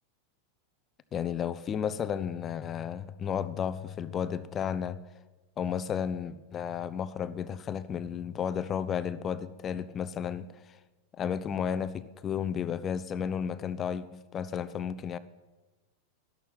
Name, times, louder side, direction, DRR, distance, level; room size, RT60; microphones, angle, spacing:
voice 1, 1.1-5.0 5.6-10.5 11.2-15.2, left 8 dB, 30° left, 0.9 m, -33 dB
11.5 x 11.5 x 7.9 m
figure-of-eight pair, 90°, 0 cm